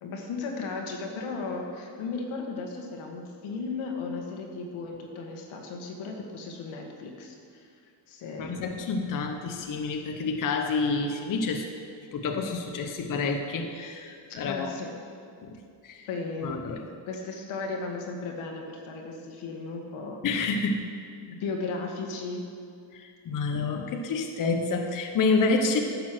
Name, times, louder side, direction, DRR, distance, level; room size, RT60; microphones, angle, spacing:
voice 1, 0.0-7.7 8.1-8.7 14.4-14.9 16.1-16.5 17.1-20.3 21.3-22.4, left 4 dB, 85° left, 1 dB, 1.8 m, -35 dB
voice 2, 8.4-11.7 12.1-14.7 15.4-15.6 15.8-16.1 16.4-16.8 20.2-20.9 22.9-25.8, left 4 dB, 45° left, 4 dB, 0.8 m, -28 dB
10.5 x 7.0 x 6.1 m, 2.4 s
cardioid pair, 140°, 47 cm